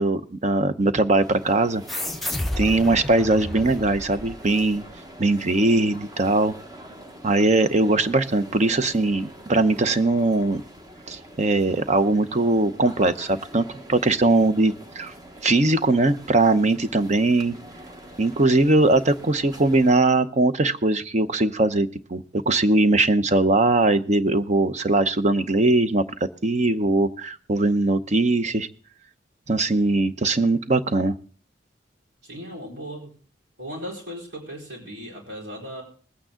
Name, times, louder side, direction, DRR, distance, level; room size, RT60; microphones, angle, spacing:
voice 1, 0.0-1.8 2.6-4.8 5.2-6.5 7.2-10.6 11.1-15.1 15.4-17.6 18.2-26.0 26.4-28.7 29.5-31.2, right 2 dB, 40° right, 11 dB, 0.7 m, -20 dB
sound 1, 1.2-20.0, right 1 dB, 20° right, 1.1 m, -44 dB
sound 2, 1.9-4.9, left 1 dB, ahead, 0.7 m, -31 dB
voice 2, 32.2-33.1 33.6-35.8, equal, 70° right, -1 dB, 4.4 m, -37 dB
20.0 x 8.9 x 3.7 m, 0.43 s
head